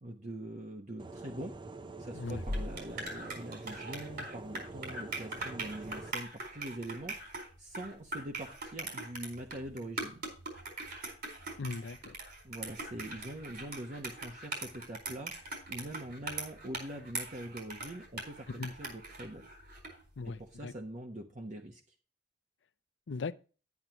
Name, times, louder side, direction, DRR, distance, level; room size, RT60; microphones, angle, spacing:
voice 1, 0.0-1.6 2.0-10.3 12.4-19.4 20.2-21.8, right 1 dB, 45° right, 1.0 m, -43 dB
sound 1, 1.0-6.1, right 2 dB, 25° right, 0.6 m, -46 dB
sound 2, 2.2-20.0, right 2 dB, 60° right, 4.4 m, -41 dB
voice 2, 11.6-12.1 18.6-18.7 20.2-20.7 23.1-23.4, left 4 dB, 85° left, 0.5 m, -38 dB
10.5 x 9.5 x 2.9 m
head